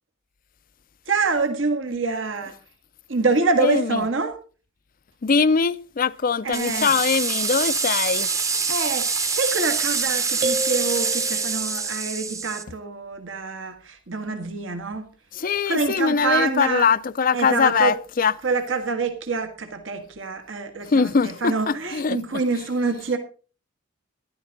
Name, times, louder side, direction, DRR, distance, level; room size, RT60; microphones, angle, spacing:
voice 1, 1.1-2.5 3.1-4.4 6.4-7.0 8.7-15.1 15.6-16.9 17.3-18.0 18.4-23.2, right 4 dB, 70° right, 1.6 m, -26 dB
voice 2, 5.2-8.3 15.4-18.3 20.9-21.5 21.9-22.2, left 5 dB, 45° left, 0.5 m, -21 dB
sound 1, 6.5-12.6, right 5 dB, 15° right, 0.8 m, -25 dB
sound 2, 10.4-11.9, right 1 dB, 45° right, 1.6 m, -30 dB
13.5 x 11.0 x 4.0 m
head